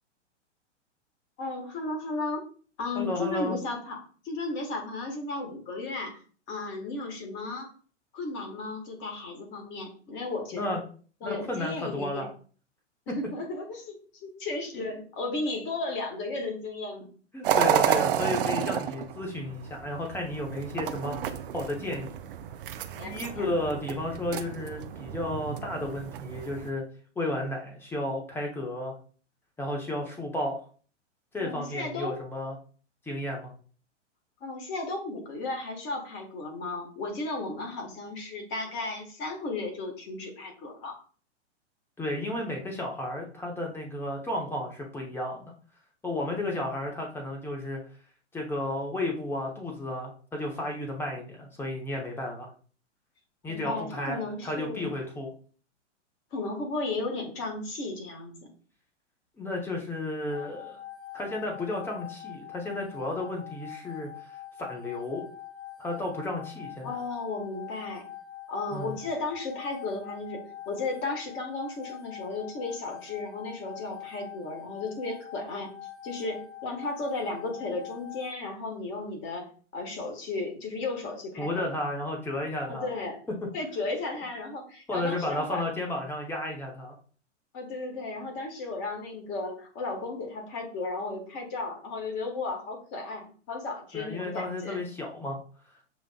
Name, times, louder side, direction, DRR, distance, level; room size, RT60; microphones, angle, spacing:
voice 1, 1.4-2.4 2.8-4.0 4.2-6.2 6.5-7.7 8.1-10.7 11.2-12.3 13.1-17.0 22.9-23.5 31.4-32.2 34.4-41.0 53.4-54.9 56.3-58.4 66.8-68.0 68.5-75.7 76.0-81.7 82.6-83.2 83.5-85.6 87.5-94.8, left 3 dB, 30° left, 3 dB, 1.3 m, -34 dB
voice 2, 2.9-3.6 10.5-10.8 11.2-12.3 17.3-21.1 21.5-22.1 23.0-26.8 27.2-29.0 29.6-30.6 31.3-32.5 33.1-33.5 42.0-45.5 46.0-47.8 48.3-52.5 53.4-55.3 59.4-60.8 61.1-64.1 64.6-65.2 65.8-67.0 68.7-69.0 81.4-82.9 84.9-86.9 93.9-95.4, left 1 dB, 5° left, 0 dB, 0.8 m, -33 dB
sound 1, 17.4-26.7, right 10 dB, 50° right, 0.5 m, -31 dB
sound 2, 60.3-78.3, left 11 dB, 70° left, 1.1 m, -44 dB
7.0 x 2.4 x 2.3 m, 0.42 s
figure-of-eight pair, 105°, 36 cm